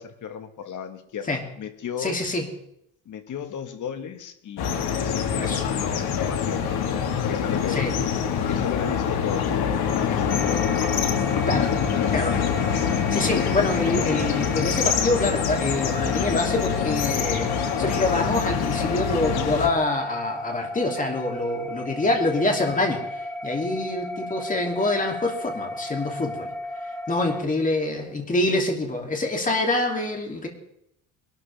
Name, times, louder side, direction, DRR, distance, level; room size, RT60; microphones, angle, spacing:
voice 1, 0.0-2.2 3.1-7.9 8.5-10.7 11.6-12.2 27.1-27.4, left 8 dB, 50° left, 7 dB, 1.8 m, -36 dB
voice 2, 2.0-2.5 5.3-5.6 7.7-7.9 11.4-11.7 12.1-12.3 12.8-17.5 17.8-23.0 23.4-26.5 27.1-30.5, left 2 dB, 20° left, 2 dB, 3.0 m, -25 dB
sound 1, 4.6-19.7, left 7 dB, 65° left, 2.0 m, -25 dB
sound 2, 10.3-27.4, left 1 dB, 5° left, 1.1 m, -35 dB
22.0 x 12.5 x 3.6 m, 0.78 s
cardioid pair, 130°, 40 cm